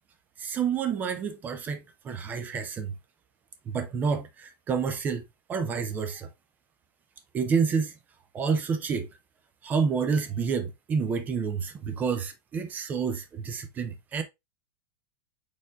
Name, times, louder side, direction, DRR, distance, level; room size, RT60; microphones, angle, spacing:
voice 1, 0.4-2.9 3.7-5.2 5.5-6.3 7.3-8.0 8.3-9.1 9.6-14.2, right 6 dB, 15° right, 0.4 m, -29 dB
4.8 x 4.3 x 2.3 m
supercardioid pair, 165°, 11 cm